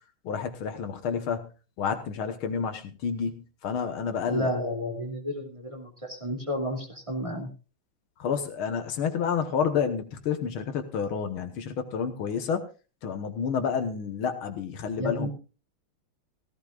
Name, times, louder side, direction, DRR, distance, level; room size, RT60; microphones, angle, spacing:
voice 1, 0.2-1.5 1.8-4.5 8.2-12.7 13.0-15.3, left 6 dB, 75° left, 8 dB, 2.0 m, -29 dB
voice 2, 4.3-7.5 15.0-15.3, equal, 15° right, -1 dB, 2.6 m, -31 dB
17.0 x 15.0 x 2.4 m, 0.33 s
omnidirectional pair, 2.3 m